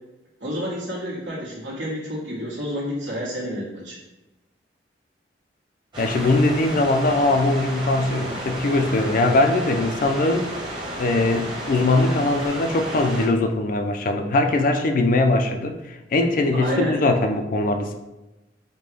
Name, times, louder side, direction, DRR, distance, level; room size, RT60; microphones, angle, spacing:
voice 1, 0.4-4.0 16.5-16.9, equal, 75° right, -5 dB, 1.4 m, -29 dB
sound 1, 5.9-13.3, right 1 dB, 25° right, 1.0 m, -32 dB
voice 2, 6.0-10.5 11.0-18.0, left 2 dB, 45° left, 5 dB, 0.3 m, -21 dB
5.2 x 2.2 x 3.3 m, 1.0 s
head